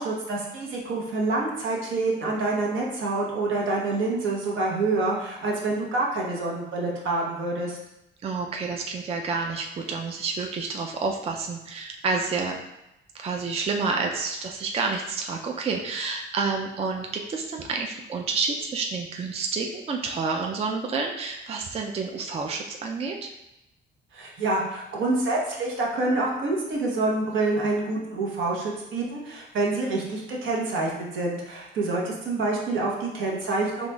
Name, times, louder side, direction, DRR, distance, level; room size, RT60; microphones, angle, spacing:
voice 1, 0.0-7.8 24.1-33.9, right 2 dB, 75° right, -3 dB, 0.9 m, -27 dB
voice 2, 8.2-12.6 13.1-23.3, right 4 dB, 30° right, 2 dB, 0.4 m, -29 dB
3.9 x 3.0 x 2.3 m, 0.88 s
cardioid pair, 90°, 20 cm